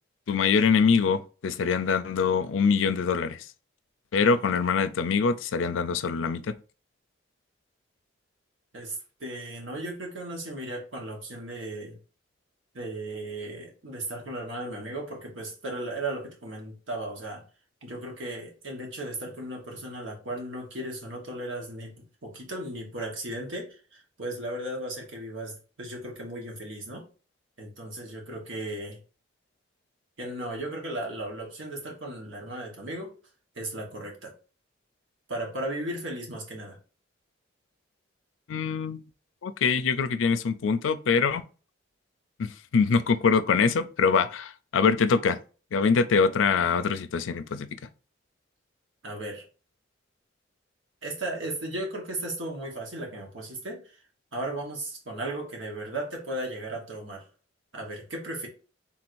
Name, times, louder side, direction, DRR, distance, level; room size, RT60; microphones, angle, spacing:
voice 1, 0.3-3.4 4.1-6.5 38.5-39.0 39.4-41.4 42.7-45.4 45.7-47.8, left 5 dB, 90° left, 0.4 m, -24 dB
voice 2, 8.7-12.0 12.7-17.4 17.8-27.1 27.6-29.0 30.2-33.1 33.5-34.3 35.3-36.8 49.0-49.4 51.0-54.0 54.3-57.3 57.7-58.5, right 1 dB, 85° right, 1.3 m, -36 dB
3.6 x 2.6 x 4.5 m
head